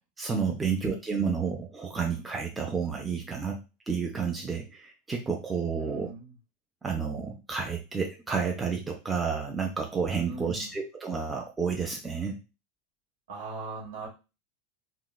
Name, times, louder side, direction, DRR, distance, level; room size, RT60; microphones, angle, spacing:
voice 1, 0.2-3.6 3.9-6.1 6.8-12.4, right 5 dB, 15° right, 1 dB, 0.4 m, -30 dB
voice 2, 5.8-6.3 10.3-10.8 13.3-14.1, right 3 dB, 60° right, -2 dB, 1.2 m, -40 dB
2.8 x 2.3 x 2.3 m, 0.29 s
figure-of-eight pair, 85°, 0 cm